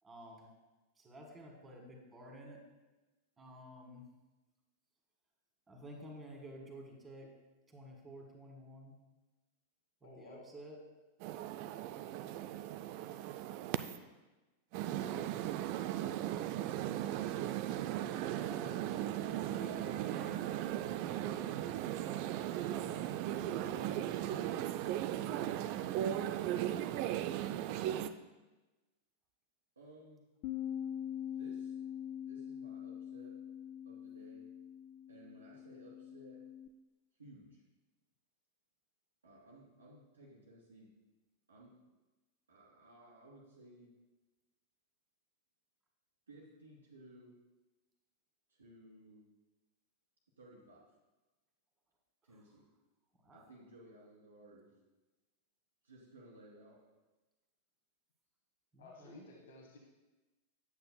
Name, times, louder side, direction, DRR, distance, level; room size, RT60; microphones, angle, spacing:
voice 1, 0.0-0.5 1.0-2.6 3.4-4.0 5.7-7.3 7.7-8.9 10.0-10.8 18.0-20.6 21.1-23.1 23.3-24.4 53.2-53.4 58.7-59.2, right 1 dB, 20° right, 1 dB, 1.6 m, -52 dB
voice 2, 10.0-10.5 58.8-59.8, left 2 dB, 65° left, 0 dB, 1.1 m, -54 dB
sound 1, 11.2-14.0 14.7-28.1, right 12 dB, 45° right, 0.3 m, -37 dB
voice 3, 29.8-30.2 31.4-31.8 32.2-33.4 33.8-34.5 35.1-36.4 37.2-37.6 39.2-40.9 41.5-41.8 42.5-43.9 46.3-47.4 48.5-49.2 50.4-50.9 52.2-52.7 53.3-54.7 55.8-56.8, right 1 dB, 80° right, -6 dB, 1.2 m, -58 dB
Bass guitar, 30.4-36.7, left 9 dB, 45° left, 0.3 m, -43 dB
8.4 x 8.2 x 2.2 m, 1.1 s
figure-of-eight pair, 90°, 0 cm